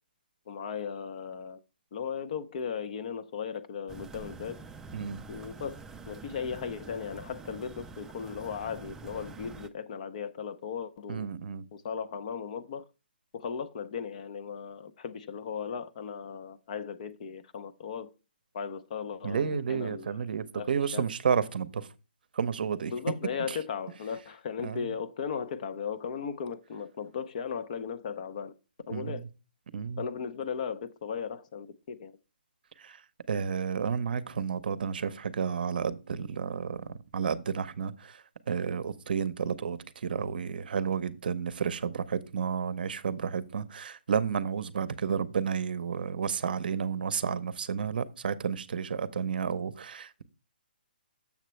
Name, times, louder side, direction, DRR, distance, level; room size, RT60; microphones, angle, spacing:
voice 1, 0.5-1.6 1.9-4.6 5.3-5.8 6.1-11.3 11.7-12.8 13.3-18.1 18.5-20.2 20.5-21.1 22.9-28.5 28.9-29.3 30.0-32.1, left 6 dB, 45° left, 0.6 m, -37 dB
sound 1, 3.9-9.7, right 4 dB, 5° right, 0.4 m, -46 dB
voice 2, 11.1-11.6 19.2-21.9 22.4-22.9 24.6-24.9 28.9-29.2 29.7-30.0 32.8-32.9 33.3-36.8 37.1-38.1 38.5-50.2, right 6 dB, 60° right, 0.6 m, -31 dB
7.1 x 6.6 x 3.1 m
hypercardioid pair, 150°, 5 cm